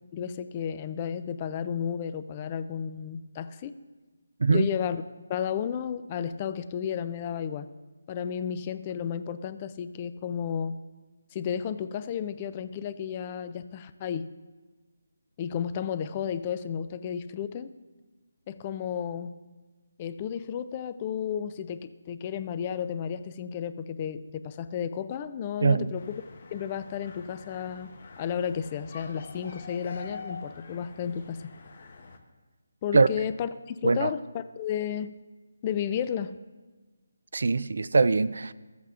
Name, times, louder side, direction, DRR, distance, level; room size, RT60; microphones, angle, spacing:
voice 1, 0.1-3.7 4.5-5.0 5.3-7.7 8.1-10.8 11.3-14.3 15.4-17.7 18.5-19.4 20.0-26.1 26.5-31.5 32.8-35.1 35.6-36.4, left 8 dB, 25° left, 0.3 m, -33 dB
voice 2, 25.6-25.9 32.9-33.1 33.8-34.1 37.3-38.5, right 4 dB, 65° right, 0.3 m, -22 dB
sound 1, 25.9-32.2, left 3 dB, 45° left, 0.8 m, -45 dB
14.0 x 8.0 x 2.4 m
figure-of-eight pair, 165°, 0 cm